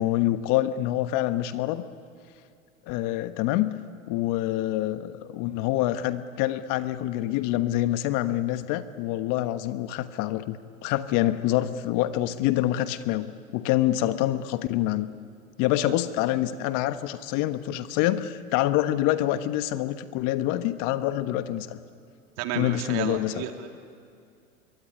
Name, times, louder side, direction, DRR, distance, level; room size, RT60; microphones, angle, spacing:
voice 1, 0.0-1.8 2.9-3.7 4.1-15.1 15.6-21.8 22.5-23.3, left 14 dB, 45° left, 10 dB, 1.4 m, -26 dB
voice 2, 22.4-23.7, right 10 dB, 50° right, 4 dB, 3.1 m, -32 dB
24.5 x 23.0 x 10.0 m, 2.3 s
hypercardioid pair, 100°, 42 cm